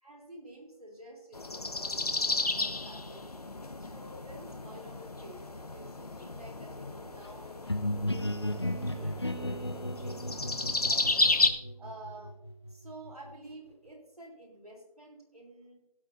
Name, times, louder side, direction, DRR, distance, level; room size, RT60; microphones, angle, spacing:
voice 1, 0.0-3.2 3.8-10.4 10.8-11.1 11.8-12.3 12.7-15.7, right 1 dB, 70° right, 0 dB, 3.6 m, -50 dB
sound 1, 1.3-11.5, left 3 dB, 70° left, 1.1 m, -33 dB
sound 2, 7.7-13.3, left 1 dB, 40° left, 0.6 m, -35 dB
16.0 x 8.8 x 2.7 m, 0.88 s
figure-of-eight pair, 175°, 20 cm